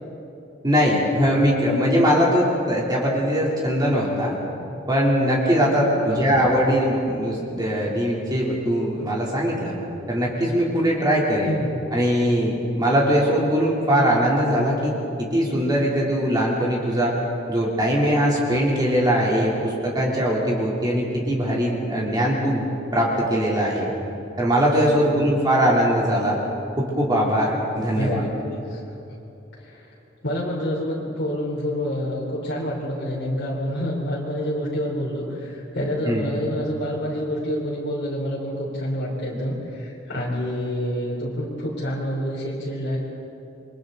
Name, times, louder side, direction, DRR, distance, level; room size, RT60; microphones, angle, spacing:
voice 1, 0.6-4.3 4.9-9.7 10.1-11.5 11.9-14.9 15.2-17.2 17.5-22.6 22.9-23.9 24.4-26.4 26.8-28.2 36.1-36.3, equal, 20° right, -4 dB, 3.3 m, -21 dB
voice 2, 6.1-6.4 11.4-11.7 25.0-25.3 27.9-28.8 29.6-29.9 30.2-43.0, equal, 60° left, -5 dB, 3.4 m, -27 dB
28.0 x 24.0 x 4.0 m, 2.8 s
head